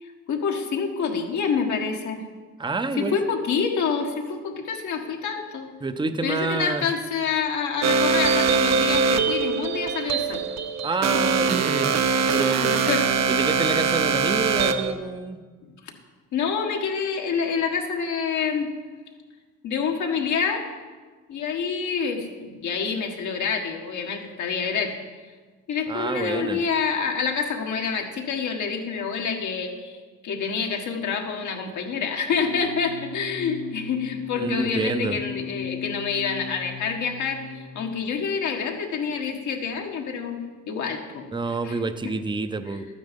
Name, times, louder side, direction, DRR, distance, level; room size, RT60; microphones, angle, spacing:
voice 1, 0.0-2.2 3.0-5.7 6.2-10.4 11.1-11.2 12.6-13.1 16.3-18.7 19.6-20.7 21.3-24.9 25.7-30.0 30.2-40.4 40.7-41.8, left 6 dB, 70° left, 2 dB, 1.6 m, -27 dB
voice 2, 2.6-3.2 5.8-6.9 10.8-12.0 12.3-12.7 13.3-15.4 25.9-26.6 34.3-35.2 41.3-42.9, right 3 dB, 15° right, 10 dB, 0.7 m, -27 dB
sound 1, 7.8-14.9, right 5 dB, 60° right, 0.8 m, -22 dB
sound 2, 32.3-38.0, left 5 dB, 55° left, 0.9 m, -37 dB
12.5 x 9.3 x 5.3 m, 1.4 s
cardioid pair, 90°, 30 cm